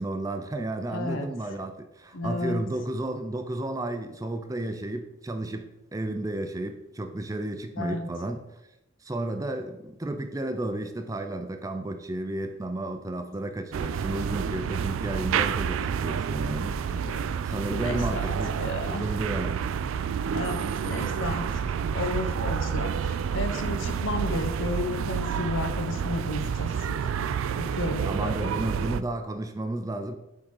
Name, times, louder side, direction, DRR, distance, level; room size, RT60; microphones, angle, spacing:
voice 1, 0.0-8.6 9.0-19.7 20.2-20.5 28.0-30.2, right 1 dB, 15° right, 0.4 m, -33 dB
voice 2, 0.9-1.3 2.1-2.6 7.8-8.1 16.9-17.3 17.7-18.2 18.6-19.0 20.3-21.4 21.9-27.1 27.5-28.5, left 2 dB, 75° left, 0.8 m, -32 dB
sound 1, 13.7-29.0, right 7 dB, 90° right, 0.3 m, -29 dB
8.2 x 3.7 x 4.7 m
head